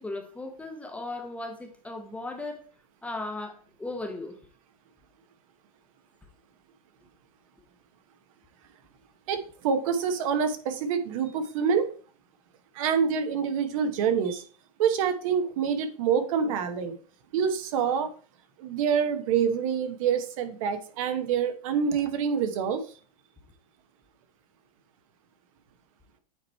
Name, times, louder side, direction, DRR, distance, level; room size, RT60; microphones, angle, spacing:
voice 1, 0.0-2.6 3.0-4.4, left 2 dB, 5° left, 0.7 m, -36 dB
voice 2, 9.3-11.9 12.7-14.5 14.8-17.0 17.3-18.1 18.6-22.8, right 7 dB, 60° right, 1.0 m, -26 dB
8.5 x 3.1 x 4.3 m
supercardioid pair, 145°, 20 cm